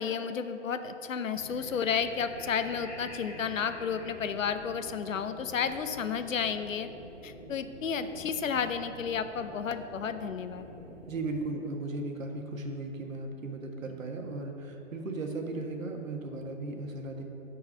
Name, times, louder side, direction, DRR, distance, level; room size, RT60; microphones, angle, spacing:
voice 1, 0.0-6.9 7.2-10.7, left 7 dB, 75° left, 10 dB, 0.8 m, -32 dB
sound 1, 1.3-11.5, equal, 10° left, 0.9 m, -47 dB
voice 2, 11.0-17.2, right 2 dB, 80° right, 3 dB, 1.5 m, -36 dB
10.0 x 4.8 x 7.3 m, 2.9 s
hypercardioid pair, 165°, 39 cm